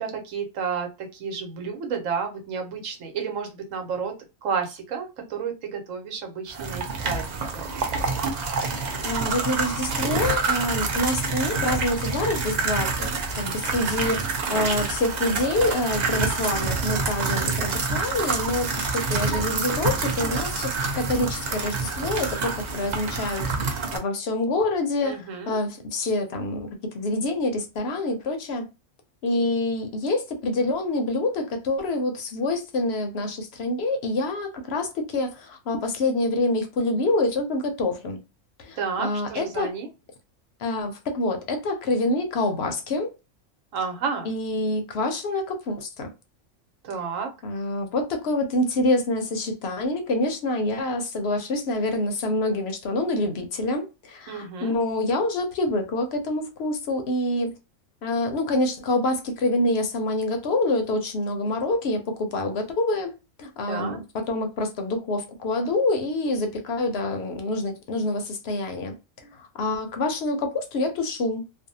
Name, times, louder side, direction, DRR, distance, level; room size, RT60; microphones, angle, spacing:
voice 1, 0.0-4.1 4.4-7.7 14.5-14.7 15.9-16.3 25.0-25.6 38.8-39.9 43.7-44.3 46.8-47.3 54.3-54.7 63.7-64.0, right 6 dB, 90° right, 1.1 m, -31 dB
sound 1, 6.5-24.0, right 4 dB, 60° right, 0.4 m, -27 dB
voice 2, 8.6-23.5 23.9-28.7 29.2-38.2 38.6-39.7 40.6-43.1 44.2-46.1 47.4-57.5 58.0-63.1 63.4-71.4, left 2 dB, 65° left, 0.8 m, -26 dB
2.6 x 2.1 x 2.6 m
omnidirectional pair, 1.3 m